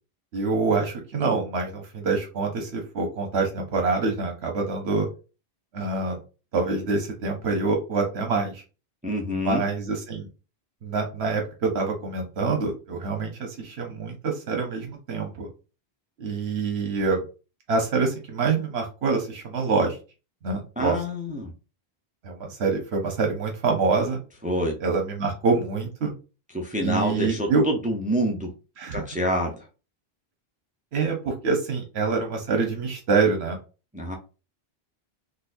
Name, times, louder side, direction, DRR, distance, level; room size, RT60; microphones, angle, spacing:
voice 1, 0.3-5.1 5.7-6.2 6.5-8.6 9.4-10.3 10.8-15.5 16.2-17.2 17.7-20.0 20.4-21.0 22.2-24.2 24.8-26.1 26.8-27.7 28.8-29.0 30.9-33.6, right 4 dB, 80° right, 1.0 m, -26 dB
voice 2, 9.0-9.6 20.8-21.5 24.4-24.8 26.5-28.5 28.9-29.6 33.9-34.1, equal, 10° right, 0.4 m, -27 dB
3.9 x 2.3 x 2.5 m
omnidirectional pair, 1.1 m